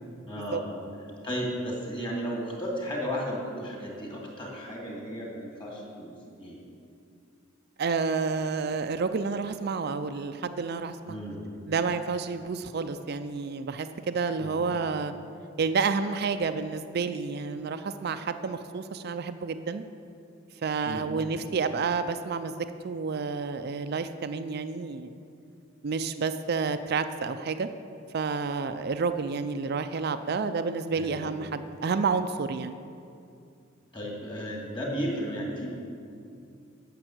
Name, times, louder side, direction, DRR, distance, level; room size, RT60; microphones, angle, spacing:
voice 1, 0.2-0.7 1.2-6.6 11.1-11.4 14.4-14.7 20.9-21.1 31.0-31.2 33.9-35.7, equal, 25° left, -2 dB, 2.6 m, -34 dB
voice 2, 7.8-11.2 11.7-15.1 15.6-19.8 20.6-22.5 22.8-25.2 25.8-27.7 28.1-32.8, right 4 dB, 50° right, 9 dB, 0.4 m, -30 dB
10.5 x 6.8 x 7.9 m, 2.5 s
head